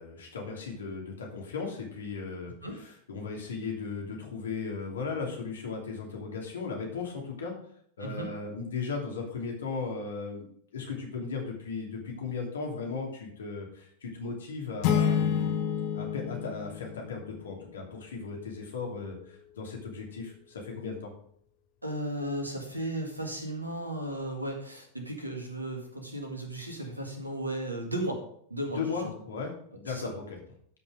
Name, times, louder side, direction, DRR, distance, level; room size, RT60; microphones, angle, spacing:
voice 1, 0.0-7.5 8.0-10.5 10.7-15.7 15.9-21.1 28.7-29.5 29.8-30.4, left 4 dB, 65° left, 1 dB, 2.8 m, -36 dB
voice 2, 8.0-8.3 21.8-28.2 28.5-28.8 29.9-30.1, right 1 dB, 85° right, 3 dB, 2.2 m, -35 dB
sound 1, 14.8-17.6, left 8 dB, 45° left, 1.4 m, -29 dB
12.5 x 5.6 x 5.1 m, 0.64 s
figure-of-eight pair, 90°, 0 cm